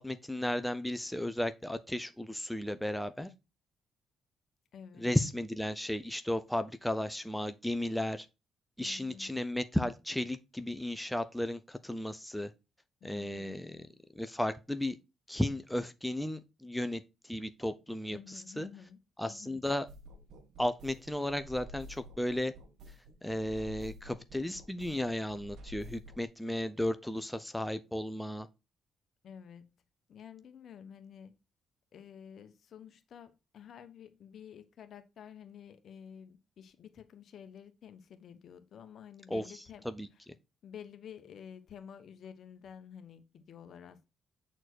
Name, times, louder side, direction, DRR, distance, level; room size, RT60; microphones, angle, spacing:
voice 1, 0.0-3.3 5.0-8.3 8.8-12.5 13.0-13.8 14.1-15.0 15.3-18.7 19.2-19.9 20.6-22.5 23.2-28.5 39.3-39.4 39.8-40.1, left 1 dB, 5° left, 0.7 m, -34 dB
voice 2, 4.7-5.1 8.8-9.3 13.0-13.7 18.1-19.6 29.2-29.8 30.1-31.3 31.9-39.8 40.6-44.1, left 8 dB, 60° left, 1.1 m, -51 dB
sound 1, 19.9-26.2, equal, 75° right, 1.5 m, -51 dB
8.2 x 4.4 x 4.6 m
cardioid pair, 90°, 0 cm